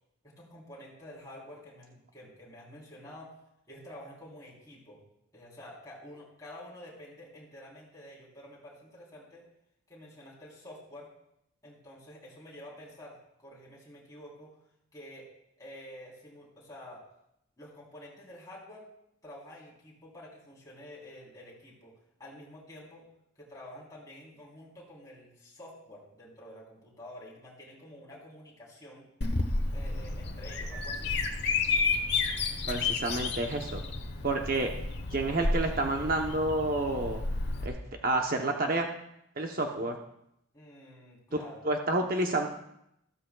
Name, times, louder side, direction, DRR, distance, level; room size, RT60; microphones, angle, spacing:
voice 1, 0.2-3.3 3.7-5.0 5.3-9.4 9.9-11.1 11.6-14.6 14.9-15.3 15.6-17.0 17.6-18.9 19.2-23.1 23.3-29.1 29.7-31.1 40.5-41.6, left 1 dB, 15° left, -5 dB, 3.5 m, -49 dB
Bird vocalization bird call bird song, 29.2-37.7, left 3 dB, 55° left, 1.1 m, -31 dB
voice 2, 32.7-33.8 34.2-34.7 35.1-37.2 37.6-37.8 38.0-38.9 39.4-40.0 41.6-42.5, right 2 dB, 45° right, 2 dB, 0.9 m, -29 dB
14.0 x 13.0 x 2.3 m, 0.78 s
head